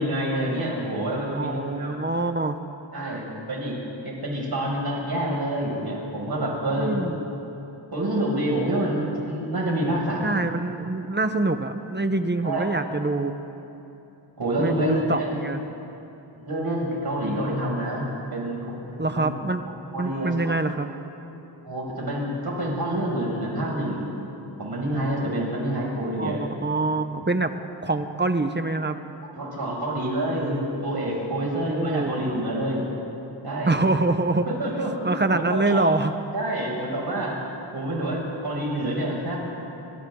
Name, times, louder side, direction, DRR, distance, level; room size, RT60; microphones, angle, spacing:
voice 1, 0.0-2.0 2.9-3.8 4.0-7.1 7.9-10.4 12.4-12.6 14.4-15.3 16.3-18.8 19.1-19.3 19.9-20.5 21.6-24.1 24.6-26.4 29.3-32.8 33.4-33.8 34.4-35.8 36.3-37.4 37.7-39.4, right 1 dB, 55° right, -3 dB, 6.9 m, -27 dB
voice 2, 1.3-2.6 6.7-7.2 10.2-13.4 14.6-15.6 19.0-19.6 20.0-20.9 26.2-27.5 27.8-29.0 31.4-32.2 33.7-34.5 35.0-36.1, right 2 dB, 25° right, 8 dB, 1.1 m, -25 dB
28.5 x 26.5 x 3.9 m, 2.9 s
wide cardioid pair, 100°, 46 cm